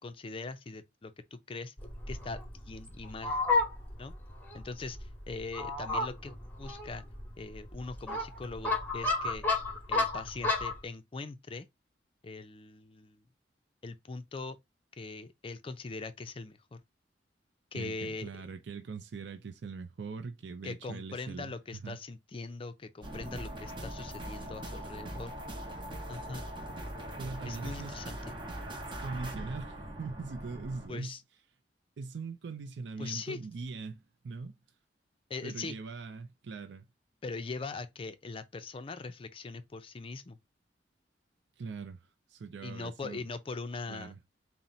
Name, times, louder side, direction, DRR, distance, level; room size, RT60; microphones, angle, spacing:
voice 1, 0.0-1.7 2.1-2.4 2.7-3.4 4.0-4.1 4.5-7.0 7.4-9.5 9.9-11.7 12.2-13.2 13.8-14.6 15.0-16.8 17.7-18.3 20.6-25.3 26.1-26.4 27.5-28.3 30.9-31.2 33.0-33.4 35.3-35.8 37.2-40.4 42.6-44.1, left 3 dB, 30° left, 0.4 m, -41 dB
Fowl, 1.8-10.8, left 3 dB, 10° left, 0.9 m, -33 dB
voice 2, 17.7-21.5 21.8-22.0 27.2-28.0 28.9-31.2 32.0-34.6 35.4-36.9 41.6-43.2 43.9-44.2, right 4 dB, 75° right, 0.4 m, -41 dB
sound 1, 23.0-30.9, right 1 dB, 25° right, 0.7 m, -41 dB
4.1 x 2.1 x 3.9 m
head